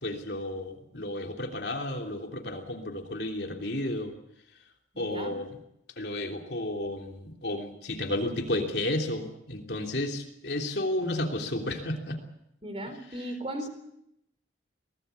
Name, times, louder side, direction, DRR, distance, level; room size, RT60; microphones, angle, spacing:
voice 1, 0.0-4.1 5.0-5.5 6.0-12.2, left 1 dB, 60° left, 3 dB, 3.2 m, -32 dB
voice 2, 4.9-5.4 12.6-13.7, right 1 dB, 30° right, 7 dB, 4.0 m, -36 dB
24.0 x 18.0 x 8.2 m, 0.81 s
head